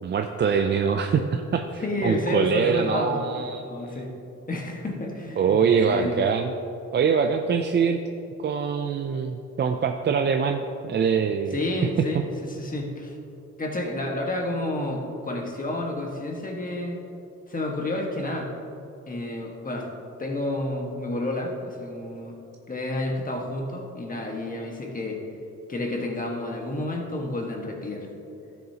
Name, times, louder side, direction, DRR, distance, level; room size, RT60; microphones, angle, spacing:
voice 1, 0.0-3.6 5.4-6.5 6.9-8.0 8.4-11.6 12.0-12.2, right 6 dB, 35° right, 5 dB, 0.4 m, -24 dB
voice 2, 1.8-3.3 3.6-4.1 4.5-6.2 7.2-7.3 11.5-13.2 13.6-17.0 17.5-18.5 19.1-19.9 20.2-22.4 22.7-25.2 25.7-28.1, left 1 dB, 25° left, 1 dB, 1.5 m, -30 dB
12.5 x 7.0 x 2.9 m, 2.9 s
cardioid pair, 90°, 30 cm